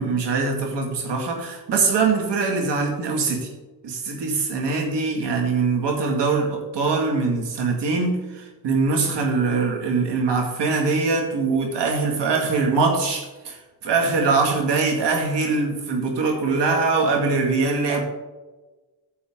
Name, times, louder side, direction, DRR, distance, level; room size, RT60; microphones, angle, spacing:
voice 1, 0.0-3.5 3.8-18.0, right 4 dB, 85° right, 2 dB, 2.3 m, -22 dB
14.0 x 7.1 x 3.8 m, 1.2 s
cardioid pair, 70°, 41 cm